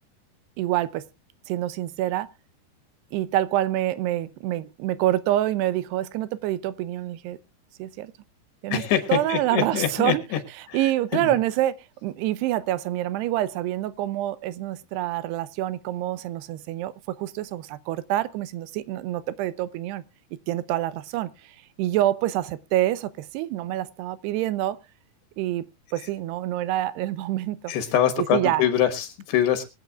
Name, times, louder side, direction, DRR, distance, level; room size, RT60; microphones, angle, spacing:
voice 1, 0.6-1.0 1.5-2.3 3.1-7.4 7.8-8.1 8.6-8.8 9.1-10.2 10.7-20.0 20.5-21.3 21.8-24.8 25.4-25.7 25.9-27.7 28.2-28.6, right 14 dB, 90° right, 2.9 m, -26 dB
voice 2, 8.7-10.4 10.7-10.8 11.1-11.4 27.7-29.7, left 10 dB, 80° left, 3.4 m, -24 dB
24.0 x 9.0 x 2.4 m
omnidirectional pair, 4.7 m